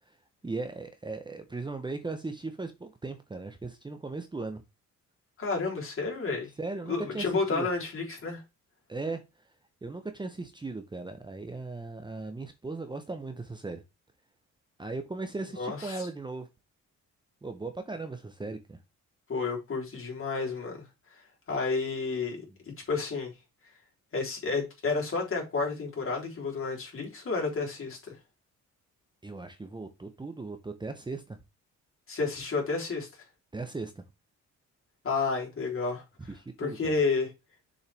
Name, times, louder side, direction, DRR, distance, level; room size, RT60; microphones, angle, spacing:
voice 1, 0.4-4.6 6.6-7.7 8.9-9.2 9.8-13.8 14.8-16.5 17.4-18.8 29.2-31.4 33.5-34.0 36.4-36.9, right 3 dB, 15° right, 0.9 m, -37 dB
voice 2, 5.4-6.5 6.9-8.4 15.6-16.1 19.3-20.8 21.1-23.3 24.1-28.1 32.1-33.1 35.0-37.3, left 4 dB, 45° left, 3.7 m, -31 dB
6.9 x 5.5 x 3.5 m
cardioid pair, 90°, 30 cm